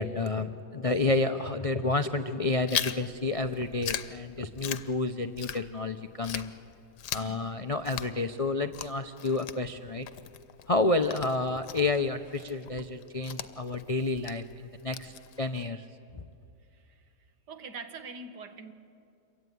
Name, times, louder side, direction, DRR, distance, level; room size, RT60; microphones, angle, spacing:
voice 1, 0.0-6.5 7.1-10.1 10.7-15.9 16.1-16.2, left 2 dB, 45° left, 8 dB, 0.4 m, -30 dB
Chewing mastication, 2.7-5.9 6.2-15.7, left 10 dB, 80° left, 1.4 m, -39 dB
voice 2, 7.2-7.6 16.7-17.0 17.5-18.7, right 4 dB, 80° right, 7 dB, 2.2 m, -44 dB
27.0 x 23.0 x 9.4 m, 2.5 s
omnidirectional pair, 1.8 m